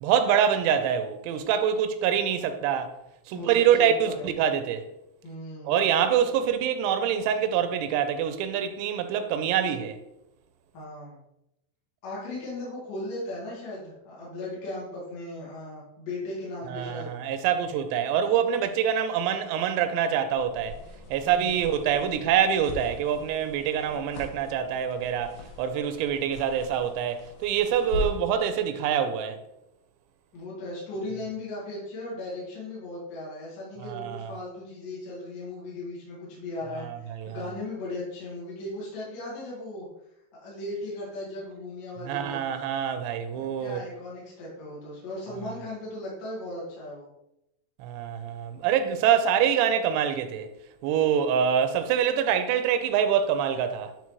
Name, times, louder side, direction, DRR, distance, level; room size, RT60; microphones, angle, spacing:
voice 1, 0.0-2.9 3.3-4.9 5.6-10.0 16.7-20.7 21.1-29.4 33.8-34.3 36.7-37.4 42.1-43.8 47.8-50.5 50.8-53.9, right 8 dB, 85° right, 2.9 m, -25 dB
voice 2, 3.3-4.3 5.2-5.8 10.7-11.2 12.0-17.1 21.2-21.7 30.3-39.9 40.3-42.4 43.3-47.1, left 2 dB, 55° left, 3.0 m, -37 dB
sound 1, 20.3-28.4, left 1 dB, 75° left, 1.7 m, -40 dB
9.6 x 3.9 x 3.1 m
omnidirectional pair, 4.9 m